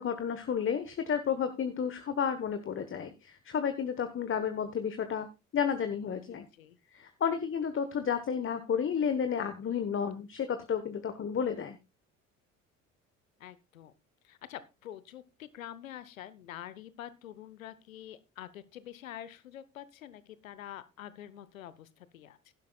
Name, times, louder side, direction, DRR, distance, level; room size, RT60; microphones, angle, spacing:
voice 1, 0.0-5.3 5.5-6.5 6.9-11.8, left 7 dB, 30° left, 9 dB, 1.2 m, -31 dB
voice 2, 6.3-6.8 13.4-13.9 14.2-22.5, left 11 dB, 75° left, 16 dB, 0.9 m, -46 dB
16.5 x 11.5 x 2.3 m, 0.26 s
figure-of-eight pair, 55°, 40 cm